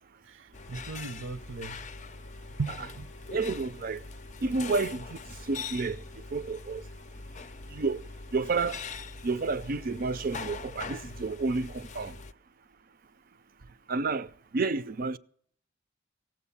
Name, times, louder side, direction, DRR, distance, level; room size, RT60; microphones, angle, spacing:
voice 1, 0.2-1.8 2.6-3.1, right 4 dB, 80° right, 0.8 m, -37 dB
sound 1, 0.5-12.3, left 4 dB, 40° left, 0.5 m, -42 dB
voice 2, 3.3-4.0 4.4-6.0 6.3-6.8 7.7-8.0 8.3-8.8 9.2-12.2 13.9-15.2, right 3 dB, 45° right, 0.5 m, -30 dB
16.5 x 7.7 x 7.0 m
head